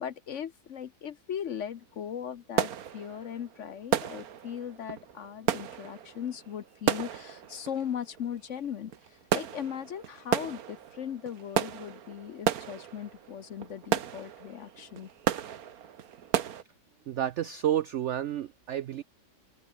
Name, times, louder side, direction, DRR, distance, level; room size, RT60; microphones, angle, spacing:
voice 1, 0.0-15.1, left 8 dB, 55° left, 0.9 m, -38 dB
sound 1, 1.5-1.7 2.0-16.6, right 9 dB, 60° right, 1.5 m, -33 dB
voice 2, 17.1-19.0, right 11 dB, 85° right, 0.6 m, -30 dB
open air
omnidirectional pair, 1.9 m